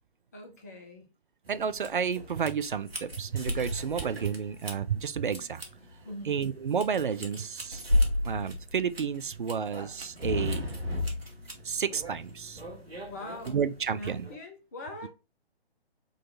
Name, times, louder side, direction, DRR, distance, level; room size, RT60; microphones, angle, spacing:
voice 1, 0.3-1.1 6.0-6.3 13.1-13.6 14.0-15.1, left 1 dB, 15° left, 0.6 m, -42 dB
sound 1, 1.4-14.3, left 1 dB, 70° right, 1.5 m, -35 dB
voice 2, 1.5-5.6 6.2-7.8 8.2-10.7 11.6-12.6 13.5-14.3, right 7 dB, 55° right, 0.4 m, -31 dB
4.0 x 3.2 x 3.8 m
figure-of-eight pair, 135°, 32 cm